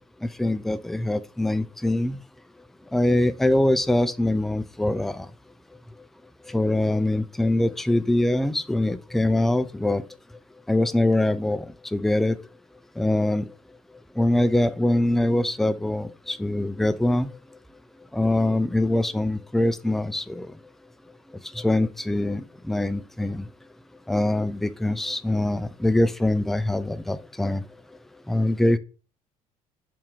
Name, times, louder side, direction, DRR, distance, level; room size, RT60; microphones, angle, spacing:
voice 1, 0.2-2.2 2.9-5.3 6.5-10.0 10.7-11.7 11.9-12.4 13.0-13.4 14.2-17.3 18.1-20.5 21.6-23.5 24.1-27.6 28.3-28.8, left 1 dB, ahead, 0.3 m, -23 dB
3.4 x 2.9 x 3.4 m
hypercardioid pair, 60°, 17 cm